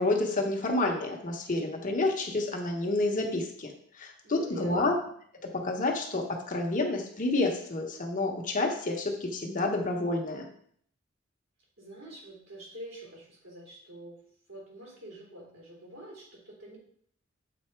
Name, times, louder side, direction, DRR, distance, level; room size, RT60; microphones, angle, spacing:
voice 1, 0.0-3.7 4.0-4.9 5.5-10.5, left 2 dB, 40° left, 2 dB, 1.0 m, -29 dB
voice 2, 4.2-4.9 11.8-14.2 14.5-16.8, equal, 80° right, -4 dB, 3.1 m, -46 dB
7.7 x 4.0 x 4.5 m, 0.63 s
head